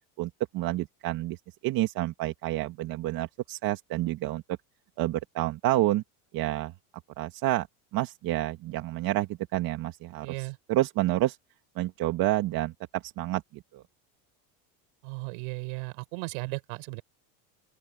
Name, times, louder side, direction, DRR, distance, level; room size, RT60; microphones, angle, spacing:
voice 1, 0.2-4.6 5.0-6.0 6.3-6.7 7.2-7.7 7.9-11.4 11.8-13.8, right 16 dB, 55° right, 2.0 m, -29 dB
voice 2, 10.2-10.6 15.0-17.0, right 33 dB, 80° right, 7.2 m, -36 dB
open air
cardioid pair, 140°, 41 cm